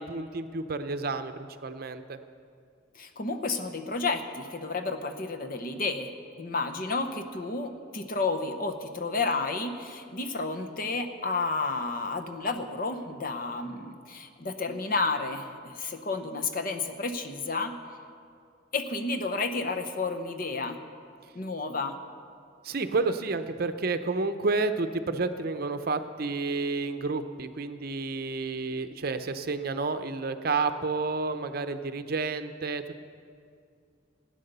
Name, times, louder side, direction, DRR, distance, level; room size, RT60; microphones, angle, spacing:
voice 1, 0.0-2.2 22.6-33.0, right 3 dB, 50° right, 9 dB, 0.7 m, -30 dB
voice 2, 2.9-6.1 6.4-17.7 18.7-20.8 21.3-21.9, left 3 dB, 45° left, 7 dB, 0.9 m, -31 dB
16.5 x 9.2 x 6.8 m, 2.3 s
head